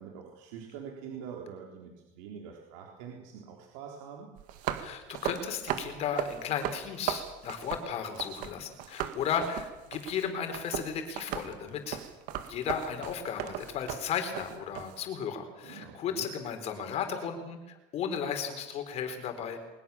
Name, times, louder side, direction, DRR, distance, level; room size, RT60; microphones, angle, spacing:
voice 1, 0.0-4.3 15.6-16.3, right 7 dB, 85° right, 0 dB, 3.9 m, -45 dB
sound 1, 4.4-8.5 8.8-15.0, right 12 dB, 60° right, 2.3 m, -36 dB
voice 2, 4.7-12.0 12.4-19.6, left 7 dB, 40° left, 7 dB, 4.4 m, -35 dB
22.5 x 21.0 x 7.3 m, 1.0 s
cardioid pair, 150°, 16 cm